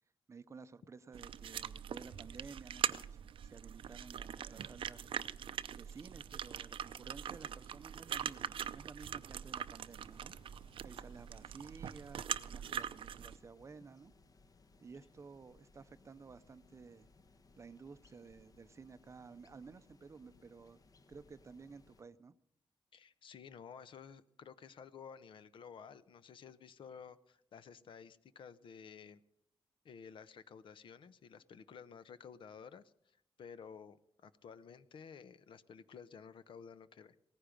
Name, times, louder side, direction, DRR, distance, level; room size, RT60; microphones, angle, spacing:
voice 1, 0.3-5.1 5.7-10.3 10.8-14.1 14.8-17.1 17.6-20.8 21.1-22.3, right 5 dB, 35° right, 13 dB, 0.6 m, -54 dB
sound 1, 1.1-13.4, right 9 dB, 75° right, 0.6 m, -42 dB
sound 2, 9.9-22.0, left 3 dB, 40° left, 1.1 m, -65 dB
voice 2, 22.9-29.2 29.8-37.2, left 6 dB, 65° left, 14 dB, 0.8 m, -53 dB
18.0 x 15.0 x 5.2 m, 0.70 s
wide cardioid pair, 155°, 9 cm